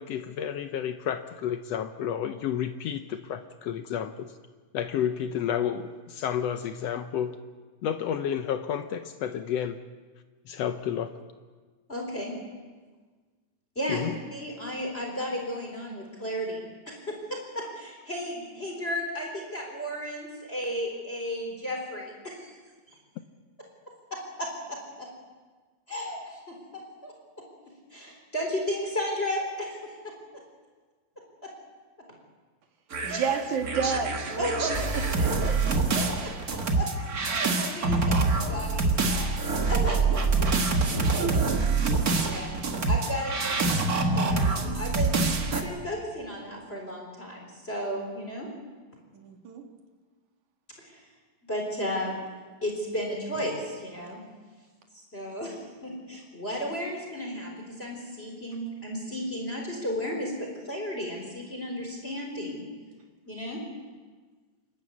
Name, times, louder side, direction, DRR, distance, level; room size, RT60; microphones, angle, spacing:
voice 1, 0.0-4.3 4.7-7.3 7.8-9.8 10.5-11.1 13.9-14.1, left 9 dB, 80° left, 8 dB, 1.4 m, -31 dB
voice 2, 11.9-12.3 13.8-22.5 24.1-25.1 25.9-27.4 27.9-30.1 31.4-31.5 33.1-33.4 34.4-35.1 35.9-36.9 37.2-39.3 39.7-40.3 42.2-42.5 42.8-48.5 50.8-51.0 51.5-52.1 52.6-54.2 54.9-62.6 63.3-63.6, equal, 15° left, 0 dB, 3.9 m, -34 dB
sound 1, 32.9-45.6, right 3 dB, 40° right, 1.4 m, -26 dB
voice 3, 33.0-36.0 40.9-41.8 49.1-49.7, right 6 dB, 65° right, 3 dB, 3.3 m, -32 dB
28.0 x 12.5 x 8.4 m, 1.4 s
omnidirectional pair, 3.9 m